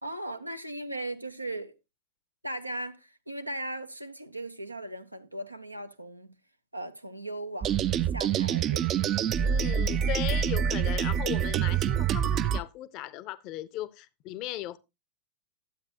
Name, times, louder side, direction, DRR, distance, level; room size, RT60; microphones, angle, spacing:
voice 1, 0.0-1.8 2.4-6.4 6.7-9.0, right 1 dB, 85° right, 0.7 m, -38 dB
sound 1, 7.6-12.6, right 8 dB, 30° right, 0.4 m, -26 dB
voice 2, 9.4-14.8, left 14 dB, 40° left, 0.6 m, -37 dB
12.0 x 8.3 x 2.8 m
figure-of-eight pair, 90°, 0 cm